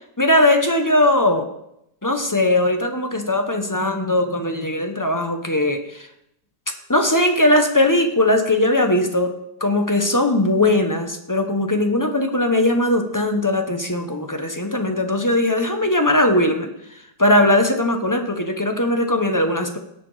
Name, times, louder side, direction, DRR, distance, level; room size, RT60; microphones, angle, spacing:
voice 1, 0.2-1.5 2.0-6.1 6.9-9.3 9.6-16.7 17.2-19.8, left 1 dB, 15° left, 6 dB, 0.7 m, -19 dB
17.0 x 5.9 x 4.8 m, 0.78 s
omnidirectional pair, 1.8 m